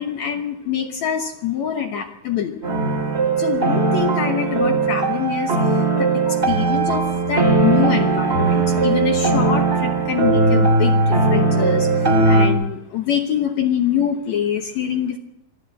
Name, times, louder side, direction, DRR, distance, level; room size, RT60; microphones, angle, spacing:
voice 1, 0.0-2.6 3.4-15.2, left 9 dB, 70° left, 5 dB, 1.7 m, -25 dB
sound 1, 2.6-12.5, right 3 dB, 20° right, 2.5 m, -18 dB
25.5 x 14.0 x 8.1 m, 0.87 s
omnidirectional pair, 4.6 m